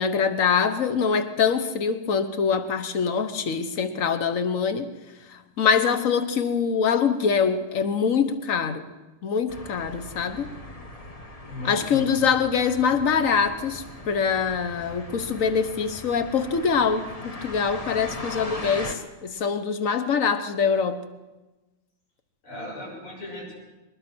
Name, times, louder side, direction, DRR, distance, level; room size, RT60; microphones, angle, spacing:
voice 1, 0.0-4.9 5.6-8.9 9.2-10.5 11.6-21.0, left 6 dB, 45° left, 10 dB, 1.3 m, -24 dB
sound 1, 9.5-18.9, left 2 dB, 20° left, 1.0 m, -39 dB
voice 2, 11.4-12.3 22.4-23.5, left 1 dB, 75° left, -1 dB, 7.0 m, -36 dB
22.0 x 19.5 x 6.2 m, 1.1 s
omnidirectional pair, 2.3 m